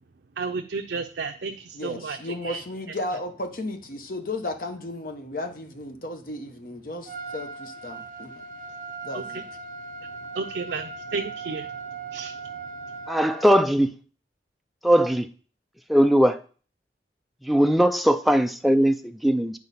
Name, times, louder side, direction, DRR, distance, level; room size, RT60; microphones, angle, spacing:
voice 1, 0.4-2.6 9.1-9.2 10.3-12.4 12.9-13.0, right 4 dB, 75° right, 0.6 m, -33 dB
voice 2, 1.7-8.4 9.0-9.5, left 2 dB, 50° left, 1.0 m, -34 dB
Trumpet, 7.1-13.6, right 4 dB, 45° right, 0.8 m, -38 dB
voice 3, 13.1-13.9 14.8-15.3 15.9-16.4 17.5-19.6, equal, ahead, 0.4 m, -20 dB
9.4 x 4.7 x 4.2 m
head